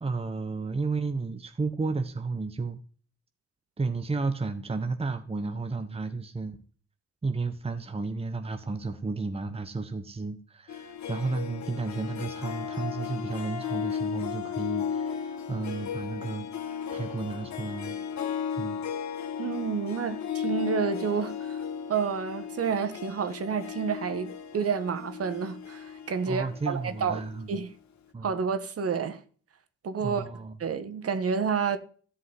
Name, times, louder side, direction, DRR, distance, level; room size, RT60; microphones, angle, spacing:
voice 1, 0.0-2.8 3.8-6.6 7.2-18.0 18.6-18.8 26.3-27.6 28.1-28.4 30.0-30.5, right 3 dB, 20° right, 1.3 m, -32 dB
Harp, 10.7-27.5, left 7 dB, 65° left, 2.2 m, -35 dB
voice 2, 19.4-21.6 21.9-27.2 27.5-27.7 28.2-29.2 29.8-30.2 30.6-31.8, right 6 dB, 50° right, 1.6 m, -29 dB
13.5 x 5.5 x 9.6 m
cardioid pair, 90°, 30 cm